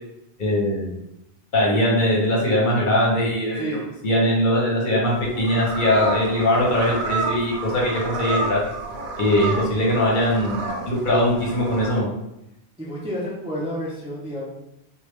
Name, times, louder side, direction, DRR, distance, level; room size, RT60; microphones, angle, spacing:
voice 1, 0.4-0.9 1.5-3.8 4.0-8.6 9.2-12.1, left 1 dB, 55° left, -4 dB, 1.0 m, -21 dB
sound 1, 5.1-12.0, right 3 dB, 60° right, 0.7 m, -30 dB
voice 2, 12.8-14.5, equal, 5° right, -6 dB, 0.5 m, -30 dB
3.4 x 2.3 x 3.1 m, 0.85 s
omnidirectional pair, 1.0 m